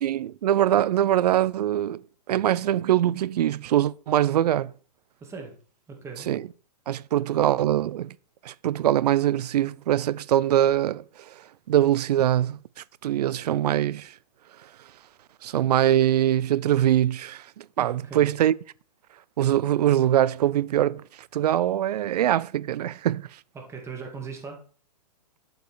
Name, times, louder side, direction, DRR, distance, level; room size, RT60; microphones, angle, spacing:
voice 1, 0.0-4.7 6.3-6.4 6.9-8.1 8.4-11.3 11.7-12.6 13.0-14.1 15.4-18.5 19.4-21.0 21.3-23.3, right 12 dB, 70° right, 0.5 m, -23 dB
voice 2, 5.2-5.5 5.9-6.3 17.8-18.4 23.5-24.6, right 5 dB, 15° right, 2.2 m, -39 dB
11.5 x 5.3 x 4.7 m
hypercardioid pair, 135°, 21 cm